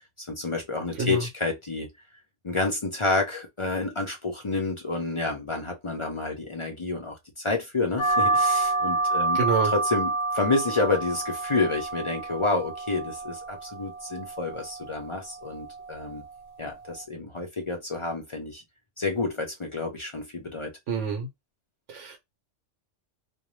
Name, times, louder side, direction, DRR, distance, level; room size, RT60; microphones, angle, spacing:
voice 1, 0.2-1.9 2.4-9.4 9.6-16.2 16.6-18.6 19.0-20.7, left 3 dB, 45° left, 0.4 m, -29 dB
sound 1, 8.0-17.0, right 3 dB, 85° left, 1.0 m, -29 dB
voice 2, 9.3-9.7 20.9-21.3 21.9-22.2, right 5 dB, 75° right, 1.0 m, -27 dB
2.5 x 2.1 x 3.0 m
omnidirectional pair, 1.3 m